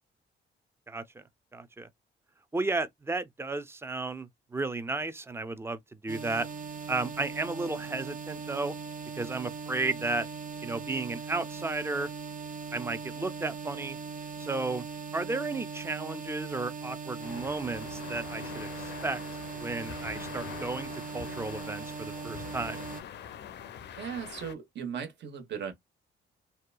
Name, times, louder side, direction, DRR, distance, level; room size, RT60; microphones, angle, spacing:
voice 1, 0.9-1.2 1.5-1.9 2.5-6.5 6.9-8.7 9.2-10.3 10.6-12.1 12.7-14.0 14.4-14.9 15.1-19.2 19.5-22.9, right 3 dB, 10° right, 0.5 m, -33 dB
sound 1, 6.1-23.0, right 5 dB, 40° right, 0.9 m, -40 dB
sound 2, 17.2-24.5, left 8 dB, 60° left, 0.5 m, -44 dB
voice 2, 24.0-25.7, right 7 dB, 65° right, 1.2 m, -37 dB
2.8 x 2.2 x 2.3 m
cardioid pair, 90°, 20 cm